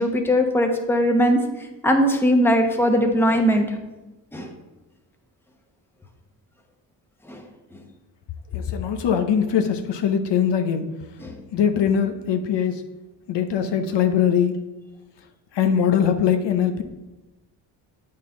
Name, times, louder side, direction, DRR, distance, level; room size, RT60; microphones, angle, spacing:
voice 1, 0.0-1.4 1.8-3.7 4.3-4.5 7.3-7.4 7.7-7.8 11.2-11.4, equal, 5° left, 3 dB, 1.0 m, -20 dB
voice 2, 8.5-10.8 11.5-12.8 13.3-14.5 15.5-16.8, left 8 dB, 65° left, 7 dB, 0.8 m, -21 dB
8.5 x 5.6 x 3.8 m, 1.0 s
cardioid pair, 100°, 45 cm